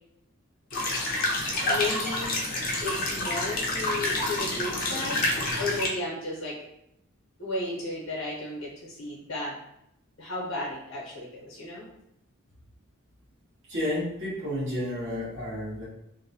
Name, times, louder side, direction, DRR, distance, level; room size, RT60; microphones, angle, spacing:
sound 1, 0.7-5.9, left 2 dB, 40° left, 0.5 m, -28 dB
voice 1, 1.6-2.4 2.8-5.2 5.6-6.6 7.4-9.6 10.2-11.9, left 2 dB, 70° left, -5 dB, 0.8 m, -34 dB
voice 2, 13.7-15.9, left 1 dB, 60° right, -8 dB, 0.9 m, -31 dB
2.6 x 2.1 x 2.7 m, 0.80 s
head